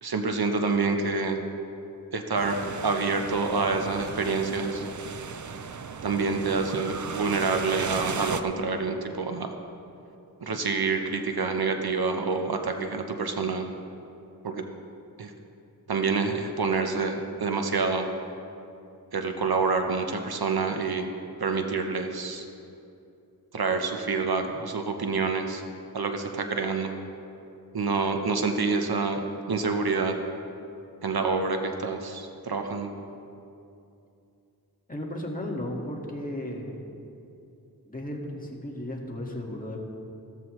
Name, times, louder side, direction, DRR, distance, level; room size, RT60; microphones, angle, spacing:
voice 1, 0.0-1.4 2.1-4.9 6.0-9.5 10.4-13.7 14.4-14.6 15.2-15.3 15.9-18.1 19.1-21.1 21.4-22.5 23.5-25.6 25.9-26.9 27.7-30.2 31.0-32.9, right 4 dB, 75° right, 4 dB, 1.0 m, -27 dB
sound 1, 2.4-8.4, right 6 dB, 50° right, 0.6 m, -36 dB
voice 2, 34.9-36.8 37.8-39.8, left 1 dB, 20° left, -2 dB, 1.8 m, -35 dB
15.0 x 13.5 x 3.2 m, 2.7 s
wide cardioid pair, 75°, 37 cm